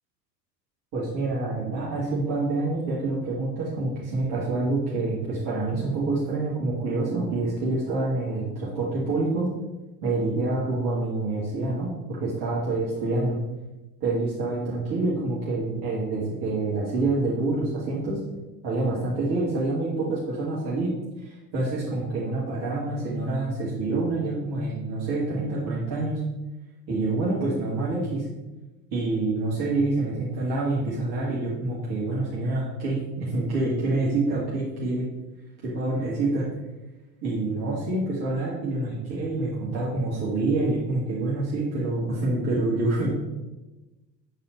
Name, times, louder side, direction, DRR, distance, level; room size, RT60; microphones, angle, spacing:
voice 1, 0.9-9.5 10.0-13.4 14.0-18.2 18.6-26.2 26.9-28.3 28.9-35.0 35.6-36.5 37.2-43.1, right 2 dB, 50° right, -8 dB, 1.9 m, -27 dB
8.1 x 4.1 x 3.9 m, 1.1 s
figure-of-eight pair, 70°, 50 cm